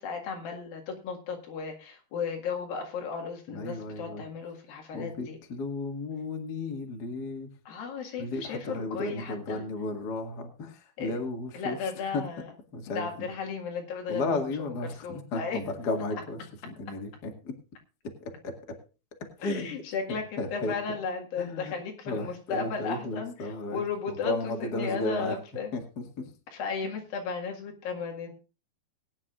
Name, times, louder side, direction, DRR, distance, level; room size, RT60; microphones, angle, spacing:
voice 1, 0.0-5.4 7.6-9.7 11.0-11.2 11.5-12.5 12.9-15.6 19.4-25.7 26.5-28.3, left 5 dB, 55° left, 1 dB, 3.3 m, -35 dB
voice 2, 3.5-4.2 4.9-7.5 8.2-10.7 11.0-11.8 12.1-12.2 12.7-13.1 14.1-16.4 16.6-17.1 17.4-17.5 19.4-19.7 20.4-20.7 21.4-21.7 22.1-22.3 22.5-23.8 24.2-25.3 25.7-25.8, left 2 dB, 85° left, 2 dB, 0.8 m, -33 dB
21.0 x 9.7 x 2.5 m, 0.32 s
omnidirectional pair, 5.4 m